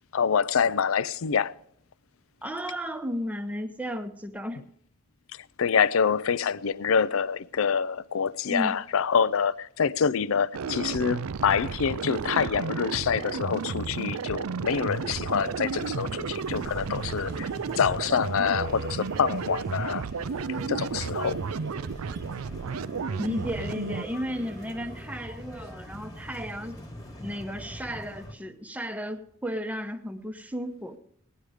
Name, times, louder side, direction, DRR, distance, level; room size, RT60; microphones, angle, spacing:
voice 1, 0.1-1.5 5.6-17.5 17.8-20.0 20.7-21.4, left 6 dB, 75° left, 0.5 m, -26 dB
voice 2, 2.4-4.6 8.5-8.8 23.2-26.8 27.2-31.0, equal, 5° right, 0.8 m, -34 dB
sound 1, 10.5-24.0, right 5 dB, 90° right, 0.5 m, -33 dB
sound 2, 11.5-26.4, right 1 dB, 50° right, 1.2 m, -46 dB
sound 3, 14.7-28.3, left 1 dB, 15° left, 1.5 m, -44 dB
17.5 x 10.5 x 4.9 m
head